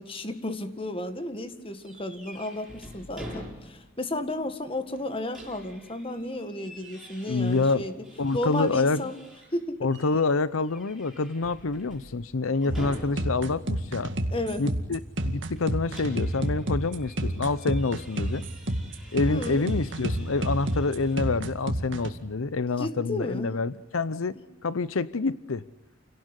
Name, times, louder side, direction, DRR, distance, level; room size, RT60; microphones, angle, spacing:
voice 1, 0.0-7.9 8.3-9.2 9.5-9.9 12.6-12.8 14.3-14.6 19.3-19.6 22.8-23.6, left 1 dB, 25° left, 9 dB, 1.9 m, -33 dB
sound 1, 1.8-4.0 4.3-4.4 4.9-9.6 9.9-10.2 10.6-13.5 15.5-21.2, equal, ahead, 7.9 m, -47 dB
voice 2, 7.3-7.9 8.2-9.1 9.8-14.1 14.6-18.4 19.1-24.3 24.6-25.6, left 3 dB, 85° left, 17 dB, 0.7 m, -27 dB
sound 2, 12.7-22.1, right 1 dB, 60° right, 2.2 m, -29 dB
29.0 x 18.0 x 8.2 m, 0.99 s
head